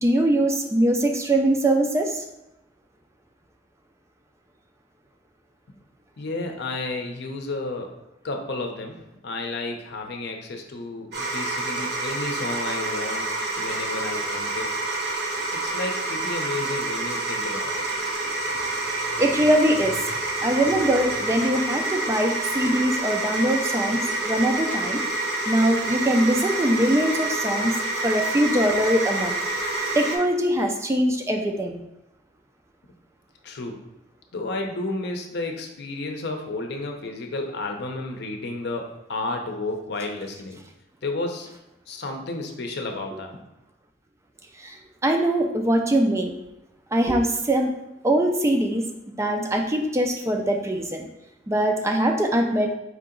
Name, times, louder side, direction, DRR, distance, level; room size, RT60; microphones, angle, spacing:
voice 1, 0.0-2.2 19.2-20.1 20.4-25.0 25.5-27.7 28.0-29.3 29.9-31.8 44.6-46.3 46.9-47.7 48.0-48.9 49.2-51.0 51.5-52.7, right 1 dB, 15° right, 3 dB, 0.4 m, -22 dB
voice 2, 6.2-7.9 8.2-9.0 9.2-13.3 13.6-14.7 15.5-17.8 33.4-33.8 34.3-40.6 41.0-41.5 41.9-43.4, left 2 dB, 65° left, 3 dB, 0.6 m, -32 dB
sound 1, 11.1-30.2, right 2 dB, 60° right, 0.9 m, -28 dB
4.8 x 2.8 x 3.7 m, 0.90 s
head